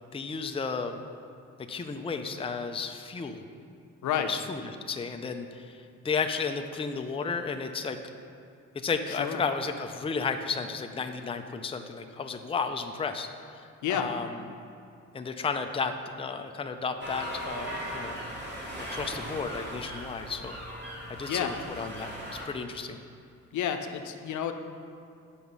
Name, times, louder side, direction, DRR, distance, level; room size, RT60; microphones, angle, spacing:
voice 1, 0.1-1.0 1.7-3.4 4.1-8.0 8.7-14.4 15.1-18.2 18.9-20.6 21.1-23.0, left 5 dB, 20° left, 6 dB, 0.5 m, -33 dB
voice 2, 4.0-4.3 9.1-9.4 13.8-14.1 21.3-21.5 23.5-24.5, left 9 dB, 75° left, 6 dB, 0.7 m, -30 dB
sound 1, 17.0-22.4, equal, 35° right, 2.2 m, -38 dB
8.5 x 6.0 x 5.4 m, 2.5 s
cardioid pair, 90°, 30 cm